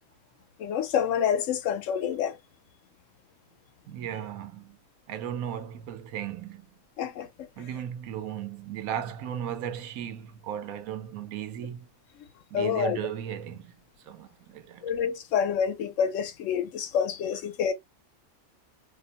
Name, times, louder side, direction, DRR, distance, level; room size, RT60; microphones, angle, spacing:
voice 1, 0.6-2.3 7.0-7.3 12.5-13.0 14.8-17.7, left 8 dB, 70° left, 0.9 m, -27 dB
voice 2, 3.9-4.8 5.1-6.7 7.6-11.9 12.5-13.8 14.1-14.9, right 9 dB, 85° right, 1.0 m, -36 dB
2.7 x 2.0 x 2.7 m
omnidirectional pair, 1.4 m